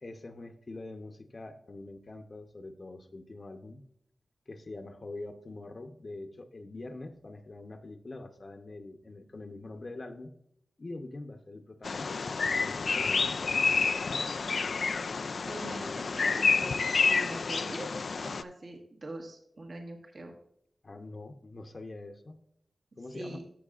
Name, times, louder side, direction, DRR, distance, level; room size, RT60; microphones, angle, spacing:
voice 1, 0.0-3.8 4.5-10.3 10.8-13.9 20.8-22.4 23.0-23.4, left 2 dB, 50° left, 6 dB, 0.9 m, -44 dB
Bird vocalization bird call bird song, 11.8-18.4, left 4 dB, 70° left, 0.3 m, -29 dB
voice 2, 15.5-17.9 18.2-20.4 23.1-23.4, right 2 dB, 60° right, 2 dB, 1.5 m, -43 dB
13.5 x 6.5 x 2.5 m, 0.72 s
wide cardioid pair, 70°, 0 cm